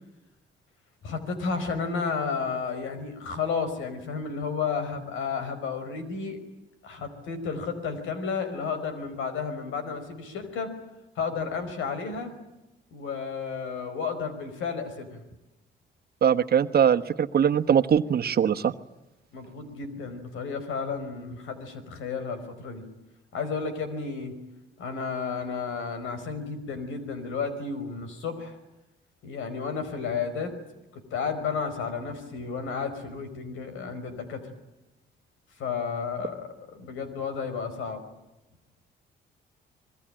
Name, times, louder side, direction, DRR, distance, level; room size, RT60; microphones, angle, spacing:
voice 1, 1.0-6.4 6.8-10.7 11.1-12.3 12.9-15.2 19.3-22.8 23.3-24.3 24.8-28.6 29.2-30.5 30.9-34.5 35.6-38.0, left 5 dB, 85° left, 10 dB, 5.1 m, -32 dB
voice 2, 16.2-18.7, right 8 dB, 50° right, 10 dB, 1.3 m, -22 dB
26.5 x 22.0 x 9.0 m, 0.97 s
cardioid pair, 90°, 20 cm